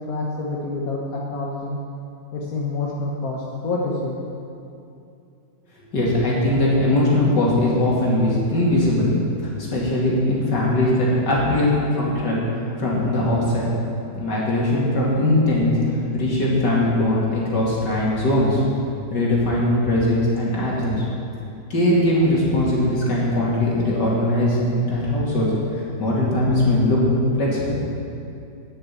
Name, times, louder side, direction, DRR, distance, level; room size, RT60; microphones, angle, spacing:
voice 1, 0.1-1.8 2.3-4.2, left 2 dB, 55° left, -3 dB, 1.6 m, -27 dB
voice 2, 5.9-9.1 9.4-12.4 12.8-13.7 14.1-15.7 16.1-18.6 19.1-21.0 21.7-25.5 26.0-27.0 27.4-27.8, left 1 dB, 75° left, -5 dB, 3.1 m, -20 dB
10.5 x 6.6 x 8.4 m, 2.6 s
omnidirectional pair, 1.9 m